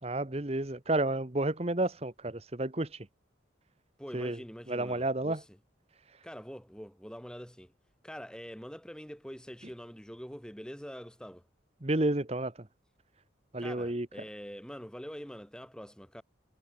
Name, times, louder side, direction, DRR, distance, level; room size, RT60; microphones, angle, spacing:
voice 1, 0.0-3.0 4.1-4.4 4.7-5.4 11.8-12.5 13.5-14.1, right 2 dB, 30° right, 1.2 m, -31 dB
voice 2, 4.0-5.6 6.2-7.7 8.0-11.4 13.6-16.2, equal, 5° left, 4.5 m, -45 dB
head